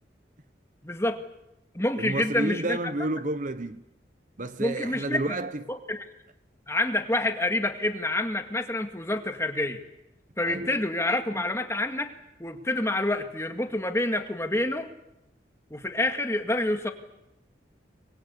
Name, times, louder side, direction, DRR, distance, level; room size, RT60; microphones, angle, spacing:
voice 1, 0.8-1.2 1.7-2.8 4.6-5.2 5.7-6.0 6.7-9.8 10.4-12.1 12.4-14.9 15.7-16.9, left 1 dB, 15° left, 1.9 m, -27 dB
voice 2, 2.0-3.8 4.4-5.6 10.5-10.8, right 2 dB, 45° right, 0.9 m, -31 dB
24.5 x 22.5 x 8.4 m
head